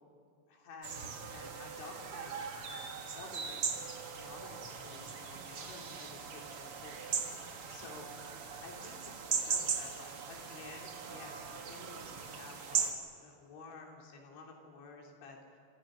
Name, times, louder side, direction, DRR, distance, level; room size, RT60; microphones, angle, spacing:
voice 1, 0.5-2.3 2.7-3.7 4.1-7.2 7.7-8.1 8.6-15.6, left 3 dB, 75° left, 1 dB, 5.3 m, -52 dB
sound 1, 0.8-12.9, right 6 dB, 75° right, 1.3 m, -39 dB
28.0 x 27.0 x 6.3 m, 2.2 s
omnidirectional pair, 5.4 m